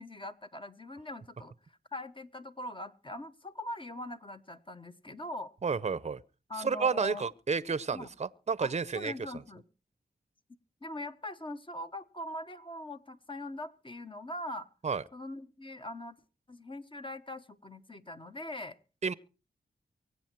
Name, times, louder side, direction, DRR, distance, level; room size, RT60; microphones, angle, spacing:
voice 1, 0.0-5.5 6.5-7.2 7.9-8.1 8.6-9.6 10.8-14.7 15.1-16.2 16.5-18.8, left 1 dB, 30° left, 1.2 m, -42 dB
voice 2, 5.6-6.2 6.6-9.1 14.8-15.0 19.0-19.1, right 5 dB, 40° right, 0.7 m, -31 dB
23.5 x 8.3 x 4.5 m
cardioid pair, 55°, 17 cm